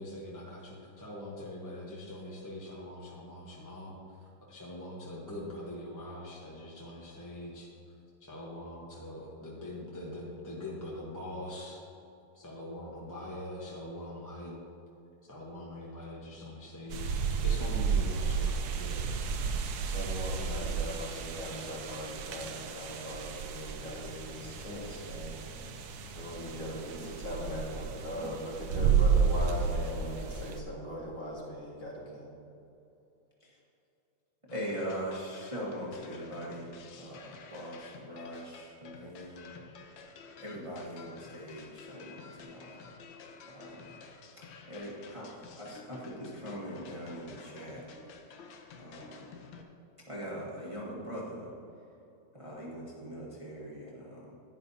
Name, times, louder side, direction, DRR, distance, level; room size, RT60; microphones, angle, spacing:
voice 1, 0.0-7.7 8.2-11.8 12.3-14.6 15.3-19.2, left 1 dB, 15° left, -4 dB, 0.8 m, -43 dB
sound 1, 16.9-30.6, right 6 dB, 65° right, 1.1 m, -32 dB
voice 2, 19.8-25.3 26.1-32.3, equal, 45° left, -5 dB, 2.2 m, -40 dB
sound 2, 34.5-49.6, left 5 dB, 80° left, 1.5 m, -51 dB
voice 3, 34.5-39.5 39.9-40.1 40.4-42.9 43.4-44.0 44.4-47.8 48.8-49.3 50.1-51.5 52.3-54.4, equal, 20° right, -6 dB, 1.2 m, -41 dB
11.0 x 9.8 x 2.7 m, 2.8 s
omnidirectional pair, 2.0 m